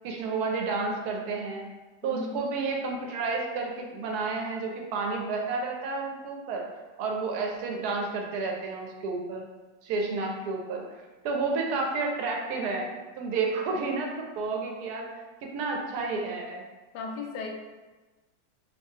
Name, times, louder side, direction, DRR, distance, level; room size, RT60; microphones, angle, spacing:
voice 1, 0.0-1.6 2.0-6.7 7.0-9.4 9.8-10.8 11.2-12.9 13.2-16.6, right 4 dB, 70° right, 1 dB, 1.0 m, -31 dB
voice 2, 2.0-2.5 16.9-17.5, left 4 dB, 70° left, 1 dB, 1.1 m, -36 dB
2.8 x 2.6 x 3.5 m, 1.2 s
omnidirectional pair, 2.0 m